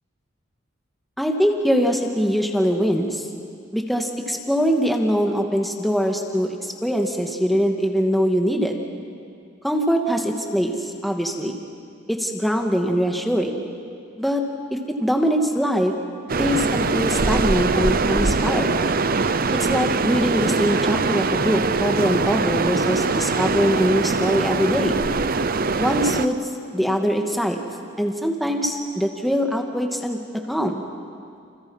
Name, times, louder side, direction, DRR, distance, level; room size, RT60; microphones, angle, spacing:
voice 1, 1.2-3.3 3.7-8.8 9.6-11.6 12.1-13.6 14.2-14.4 14.7-15.9 16.4-18.7 19.5-25.0 25.8-26.4 26.7-27.6 28.0-30.2 30.5-30.8, equal, ahead, 2 dB, 2.1 m, -22 dB
sound 1, 16.3-26.3, right 3 dB, 50° right, 0.8 m, -22 dB
30.0 x 28.5 x 5.7 m, 2.4 s
head